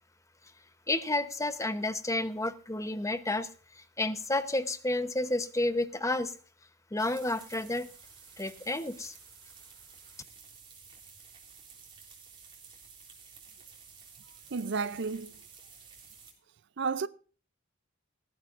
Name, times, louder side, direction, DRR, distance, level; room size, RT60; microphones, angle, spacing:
voice 1, 0.9-3.5 3.8-6.3 6.9-7.9 8.4-9.1, left 2 dB, 15° left, 0.9 m, -31 dB
sound 1, 7.0-16.3, right 6 dB, 25° right, 3.7 m, -53 dB
voice 2, 14.5-15.4 16.8-17.1, right 5 dB, 60° right, 0.5 m, -32 dB
18.0 x 14.5 x 2.5 m
head